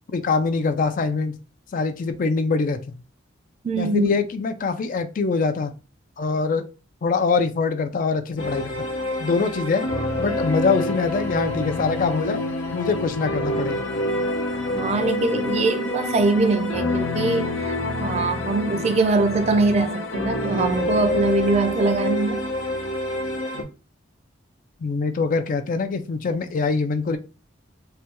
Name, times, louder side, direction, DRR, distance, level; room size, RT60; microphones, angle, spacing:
voice 1, 0.1-1.4 1.7-2.9 3.7-5.7 6.2-6.6 7.0-8.8 9.2-9.9 10.2-12.4 12.7-13.8 24.8-27.2, left 4 dB, 45° left, 0.4 m, -23 dB
voice 2, 3.6-4.2 10.3-10.4 14.7-22.5, right 3 dB, 35° right, 0.3 m, -22 dB
sound 1, 8.4-23.6, left 1 dB, 80° left, 0.7 m, -27 dB
3.2 x 2.2 x 2.9 m
head